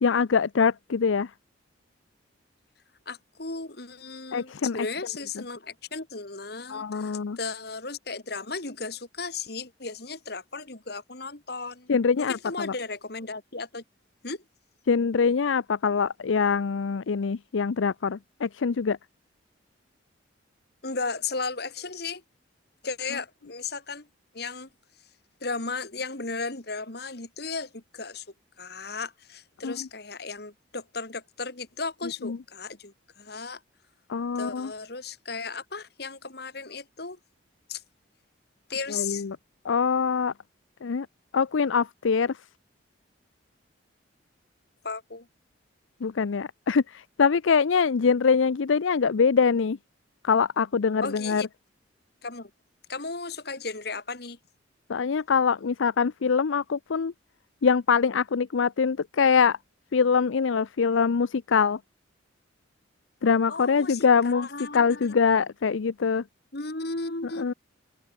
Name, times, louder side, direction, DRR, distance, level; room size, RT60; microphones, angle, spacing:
voice 1, 0.0-1.3 4.3-4.8 6.7-7.4 11.9-12.7 14.9-19.0 29.6-29.9 32.2-32.4 34.1-34.7 38.9-39.4 39.6-40.3 40.8-41.1 41.3-42.4 46.0-49.8 50.2-51.4 54.9-57.1 57.6-59.6 59.9-61.8 63.2-64.5 64.7-66.2 67.4-67.5, left 5 dB, 90° left, 0.5 m, -24 dB
voice 2, 3.1-11.9 12.2-13.8 14.2-14.4 20.8-22.2 22.8-24.1 24.3-24.7 25.4-28.2 28.6-33.6 34.3-37.2 37.7-37.8 38.7-39.2 44.8-45.3 51.0-51.5 52.2-52.5 52.9-54.4 63.5-65.1 66.5-67.5, left 4 dB, 55° left, 2.3 m, -35 dB
open air
head